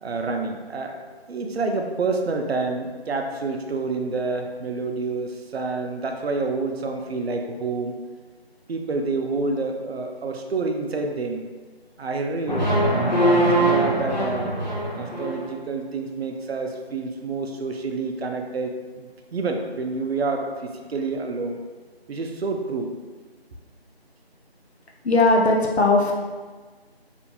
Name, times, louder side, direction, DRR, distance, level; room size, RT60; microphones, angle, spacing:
voice 1, 0.0-1.0 1.3-8.0 8.7-11.5 12.0-14.5 15.0-21.6 22.1-22.9, right 3 dB, 75° right, 4 dB, 0.5 m, -28 dB
sound 1, 12.5-15.5, right 1 dB, 45° left, 0.5 m, -22 dB
voice 2, 25.0-26.1, left 2 dB, 85° left, 0 dB, 0.6 m, -18 dB
2.5 x 2.2 x 2.7 m, 1.4 s
figure-of-eight pair, 175°, 31 cm